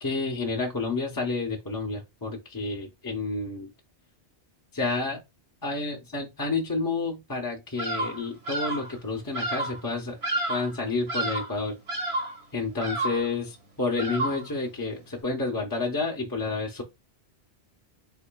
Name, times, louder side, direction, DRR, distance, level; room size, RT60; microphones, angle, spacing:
voice 1, 0.0-3.7 4.7-5.2 5.6-10.2 10.5-11.8 12.5-16.8, left 3 dB, 25° left, 0.6 m, -30 dB
Bird vocalization bird call bird song, 7.8-8.2 8.4-8.9 9.3-9.8 10.2-10.7 11.1-11.5 11.9-12.4 12.8-13.3 14.0-14.5, right 2 dB, 75° right, 1.6 m, -30 dB
3.6 x 3.4 x 2.2 m
omnidirectional pair, 1.1 m